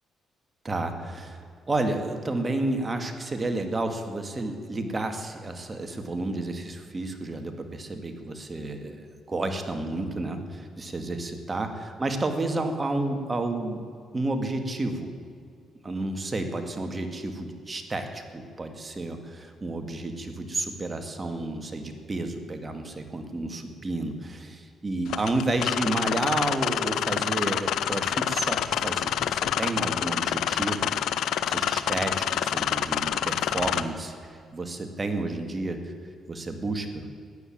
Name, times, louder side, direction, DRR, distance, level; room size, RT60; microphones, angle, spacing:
voice 1, 0.6-13.8 14.1-15.1 15.8-30.9 31.5-35.9 36.3-37.1, right 2 dB, 25° right, 6 dB, 2.1 m, -31 dB
sound 1, 25.1-33.8, left 10 dB, 80° left, 0.7 m, -27 dB
15.0 x 10.0 x 8.7 m, 2.3 s
cardioid pair, 90°, 0 cm